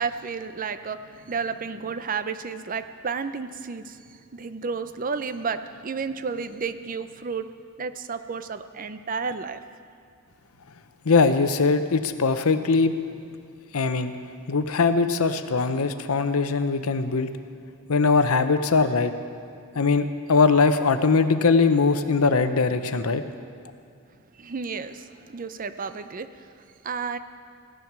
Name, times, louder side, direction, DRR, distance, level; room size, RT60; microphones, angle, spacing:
voice 1, 0.0-7.5 7.8-9.6 24.3-27.2, right 5 dB, 40° right, 11 dB, 0.5 m, -32 dB
voice 2, 11.1-12.9 13.7-14.1 14.5-17.3 17.9-19.1 19.7-23.2, left 4 dB, 85° left, 10 dB, 0.8 m, -21 dB
16.0 x 10.5 x 6.0 m, 2.3 s
head